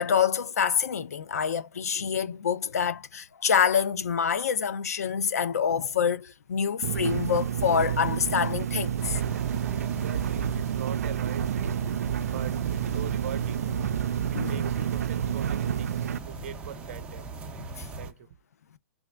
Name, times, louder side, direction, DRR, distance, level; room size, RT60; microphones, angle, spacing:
voice 1, 0.0-9.2 14.3-14.6 17.8-17.9, left 7 dB, 80° left, 0.6 m, -26 dB
sound 1, 6.8-16.2, right 9 dB, 80° right, 0.4 m, -29 dB
sound 2, 9.0-18.1, right 3 dB, 10° right, 0.6 m, -39 dB
voice 2, 9.7-11.8 12.1-13.7 14.3-17.3 18.0-18.4, right 9 dB, 55° right, 0.8 m, -42 dB
3.4 x 2.6 x 3.3 m
hypercardioid pair, 140°, 8 cm